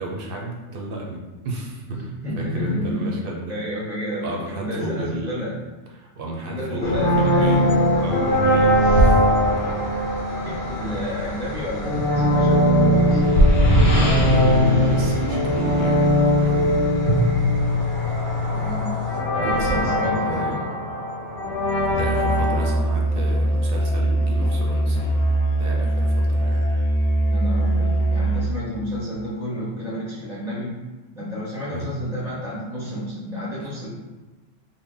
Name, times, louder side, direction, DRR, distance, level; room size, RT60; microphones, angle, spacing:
voice 1, 0.0-3.6 4.2-5.4 5.9-7.7 8.0-9.2 13.8-16.8 19.4-20.7 21.8-26.7 31.7-31.9 32.8-33.0, right 2 dB, 55° right, -1 dB, 0.7 m, -33 dB
voice 2, 1.9-3.2 3.5-5.6 6.5-7.6 10.4-13.2 18.5-19.0 19.3-20.7 27.3-30.8 31.1-33.9, left 1 dB, 5° right, -6 dB, 0.6 m, -30 dB
sound 1, 6.8-22.7, equal, 60° left, 1.0 m, -20 dB
Musical instrument, 21.9-28.7, right 1 dB, 85° left, 0.3 m, -22 dB
3.7 x 2.1 x 3.7 m, 1.2 s
omnidirectional pair, 1.3 m